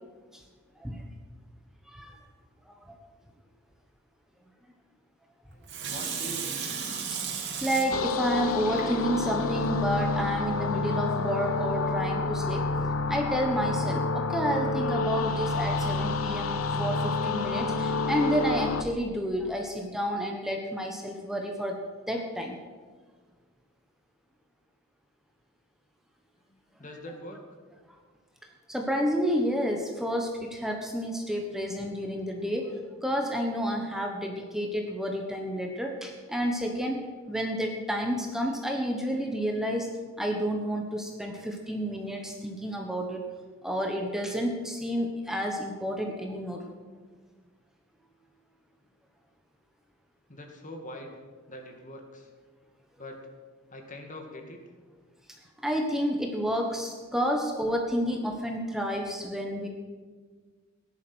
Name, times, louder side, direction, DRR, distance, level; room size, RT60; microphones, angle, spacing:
voice 1, 1.9-2.2 2.7-2.9 7.1-12.6 13.1-21.8 22.1-22.6 28.7-37.0 37.3-39.9 40.2-43.2 43.6-46.6 55.6-59.7, equal, ahead, 1 dB, 1.3 m, -30 dB
Water tap faucet / Sink (filling or washing), 5.7-9.4 9.9-10.0, right 6 dB, 55° right, 2.7 m, -35 dB
voice 2, 5.9-6.8 26.5-27.4 50.3-51.1 51.5-52.3 53.0-53.2 53.7-54.6, left 1 dB, 40° left, 3 dB, 2.3 m, -43 dB
sound 1, 7.9-18.8, left 3 dB, 90° left, 0.8 m, -29 dB
16.5 x 11.0 x 6.4 m, 1.5 s
head